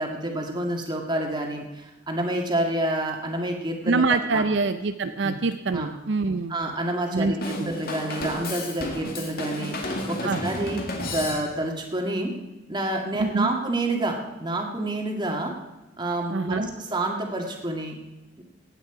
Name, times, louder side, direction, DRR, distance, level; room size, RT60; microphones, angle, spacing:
voice 1, 0.0-4.4 5.2-5.4 5.7-5.9 6.5-9.7 10.1-10.8 11.1-12.3 12.7-15.5 16.0-18.0, right 1 dB, 20° right, 2 dB, 1.8 m, -28 dB
voice 2, 3.9-6.5 7.1-7.3 7.6-7.7 10.2-10.4 13.2-13.5 16.3-16.7, right 3 dB, 60° right, 9 dB, 0.5 m, -25 dB
Drum kit / Drum, 7.4-11.8, left 1 dB, 45° left, 2.2 m, -32 dB
17.0 x 9.2 x 4.9 m, 1.1 s
head